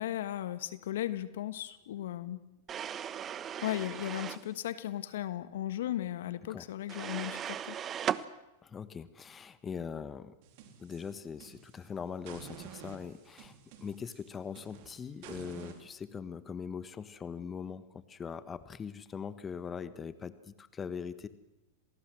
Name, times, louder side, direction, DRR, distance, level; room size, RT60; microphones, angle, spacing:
voice 1, 0.0-2.4 3.6-7.8, left 13 dB, 70° left, 14 dB, 1.4 m, -36 dB
sound 1, 2.7-4.5 6.9-8.2, right 9 dB, 30° right, 1.0 m, -37 dB
voice 2, 8.6-10.3 10.8-13.5 13.8-21.3, left 6 dB, 20° left, 14 dB, 1.4 m, -41 dB
sound 2, 10.4-11.9 12.3-15.8, right 8 dB, 55° right, 3.9 m, -50 dB
27.5 x 18.5 x 7.8 m, 0.94 s
hypercardioid pair, 100°, 0 cm